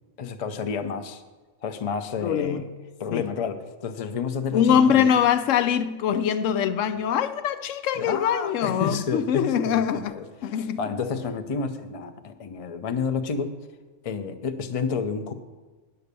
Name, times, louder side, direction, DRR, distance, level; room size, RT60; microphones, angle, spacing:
voice 1, 0.2-1.2 1.6-2.7 3.0-5.1 8.0-13.6 14.0-15.3, left 5 dB, 40° left, 0.5 m, -30 dB
voice 2, 2.2-2.6 3.1-3.2 4.5-10.1 10.4-10.8, left 8 dB, 80° left, 0.9 m, -23 dB
9.8 x 6.9 x 6.7 m
omnidirectional pair, 1.3 m